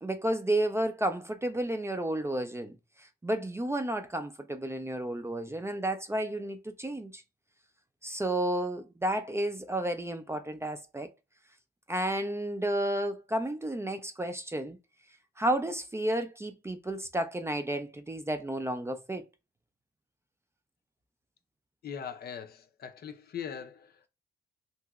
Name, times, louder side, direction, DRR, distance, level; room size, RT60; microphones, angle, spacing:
voice 1, 0.0-7.2 8.0-11.1 11.9-14.8 15.4-19.2, right 1 dB, 15° right, 0.4 m, -32 dB
voice 2, 21.8-24.1, left 7 dB, 50° left, 0.6 m, -41 dB
3.0 x 2.8 x 2.3 m
cardioid pair, 90°, 20 cm